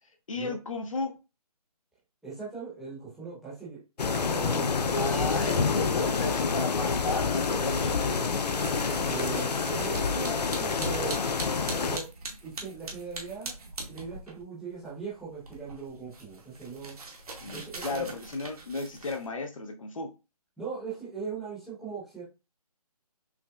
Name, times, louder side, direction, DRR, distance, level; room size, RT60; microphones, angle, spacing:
voice 1, 0.3-1.1 4.9-8.2 17.4-20.1, left 3 dB, 55° left, 0.7 m, -34 dB
voice 2, 2.2-3.8 4.3-5.3 9.1-11.2 11.8-12.1 12.4-13.5 13.9-17.0 17.5-18.0 20.6-22.2, right 5 dB, ahead, 0.9 m, -39 dB
sound 1, 4.0-12.0, left 4 dB, 90° left, 0.5 m, -28 dB
sound 2, 8.5-14.4 14.7-19.3, right 2 dB, 70° right, 1.2 m, -42 dB
5.8 x 2.0 x 2.4 m
hypercardioid pair, 165°, 20 cm